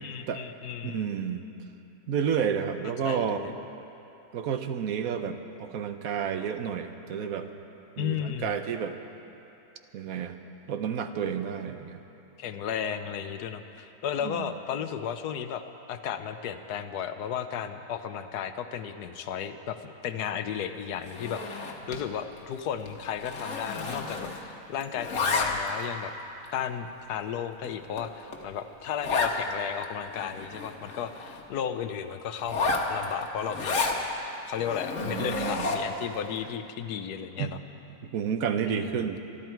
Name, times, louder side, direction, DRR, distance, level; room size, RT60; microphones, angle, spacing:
voice 1, 0.0-1.0 3.0-3.5 8.0-8.6 12.4-15.6 15.9-26.1 26.5-33.9 34.4-37.6 38.7-39.1, left 8 dB, 85° left, 9 dB, 1.3 m, -34 dB
voice 2, 0.8-1.4 2.1-3.6 4.3-7.5 8.0-9.0 9.9-10.4 10.7-12.0 14.2-14.5 35.0-35.7 37.4-37.6 38.0-39.2, right 7 dB, 70° right, 8 dB, 1.2 m, -30 dB
Zipper (clothing), 21.0-22.1 22.4-22.6 22.9-24.5 24.8-25.8 26.4-26.5 27.1-27.2 27.6-27.7 28.0-28.1 28.3-28.4 29.0-29.4 29.8-29.9 30.1-31.4 32.4-34.0 34.6-36.0, left 3 dB, 55° left, 1.6 m, -31 dB
26.0 x 11.5 x 4.6 m, 3.0 s
omnidirectional pair, 1.6 m